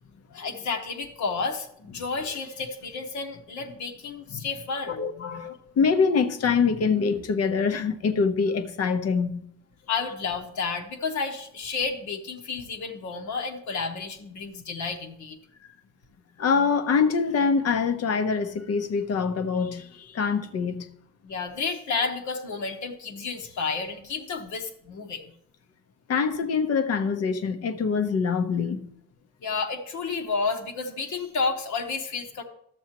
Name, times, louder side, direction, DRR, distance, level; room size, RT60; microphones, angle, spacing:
voice 1, 0.3-5.6 9.9-15.4 21.2-25.3 29.4-32.4, left 4 dB, 70° left, 1.2 m, -31 dB
voice 2, 4.8-9.4 16.4-20.9 26.1-28.9, left 5 dB, 55° left, 0.8 m, -25 dB
12.0 x 7.1 x 2.9 m
cardioid pair, 90°, 30 cm